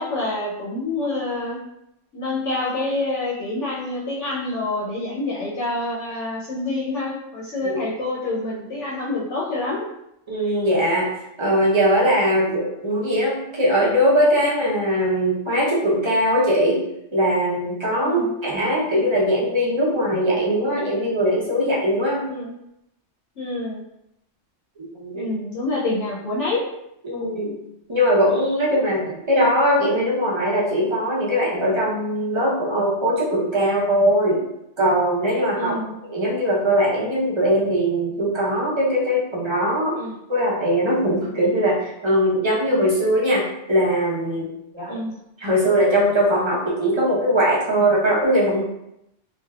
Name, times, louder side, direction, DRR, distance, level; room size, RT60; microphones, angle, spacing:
voice 1, 0.0-1.6 2.1-9.9 18.0-18.2 22.3-22.5 23.4-23.8 25.1-26.6 27.4-27.5 35.5-35.9 39.9-40.2 44.9-45.2, left 2 dB, 75° left, -5 dB, 0.9 m, -27 dB
voice 2, 10.3-11.1 11.4-16.8 17.1-22.2 24.8-25.3 27.0-27.6 27.9-34.4 34.8-35.8 36.1-40.0 40.3-44.5 44.7-44.9 45.4-48.6, equal, 30° right, -5 dB, 0.6 m, -20 dB
3.3 x 2.5 x 2.3 m, 0.82 s
omnidirectional pair, 1.3 m